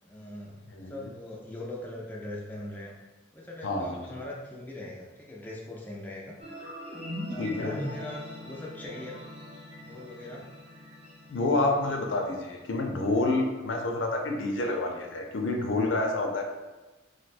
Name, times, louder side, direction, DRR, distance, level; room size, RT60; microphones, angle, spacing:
voice 1, 0.0-2.9 3.3-6.4 7.3-9.2 9.8-10.5, left 1 dB, 10° left, -3 dB, 0.3 m, -41 dB
voice 2, 0.7-1.0 3.6-4.2 7.4-7.8 11.3-16.4, left 2 dB, 80° left, 2 dB, 0.5 m, -28 dB
sound 1, 6.4-13.4, equal, 30° right, 0.9 m, -42 dB
2.6 x 2.2 x 4.1 m, 1.1 s
head